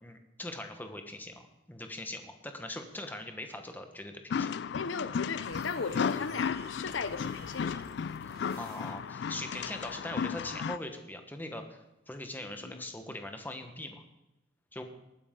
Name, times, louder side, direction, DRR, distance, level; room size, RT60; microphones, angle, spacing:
voice 1, 0.0-4.5 8.6-14.0 14.7-14.8, left 1 dB, 10° left, 5 dB, 1.2 m, -41 dB
sound 1, 4.3-10.8, left 6 dB, 60° left, 0.3 m, -34 dB
voice 2, 4.7-7.9 8.2-8.3 12.7-12.8, left 5 dB, 85° left, 13 dB, 0.7 m, -37 dB
sound 2, 5.4-9.3, right 4 dB, 55° right, 1.0 m, -52 dB
19.5 x 9.6 x 3.8 m, 0.97 s
head